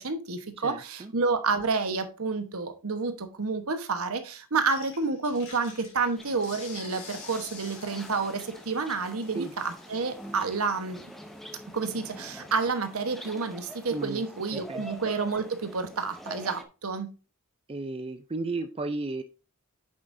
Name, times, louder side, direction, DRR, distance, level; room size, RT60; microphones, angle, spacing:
voice 1, 0.0-11.1 11.7-17.1, right 4 dB, 70° right, 8 dB, 1.1 m, -29 dB
voice 2, 0.6-1.1 9.3-9.5 13.9-14.2 14.5-14.8 17.7-19.2, right 3 dB, 25° right, 8 dB, 0.5 m, -34 dB
sound 1, 4.6-13.8, left 5 dB, 55° left, 4.5 m, -49 dB
sound 2, 6.2-16.6, equal, ahead, 0.8 m, -45 dB
8.6 x 7.3 x 2.6 m, 0.33 s
head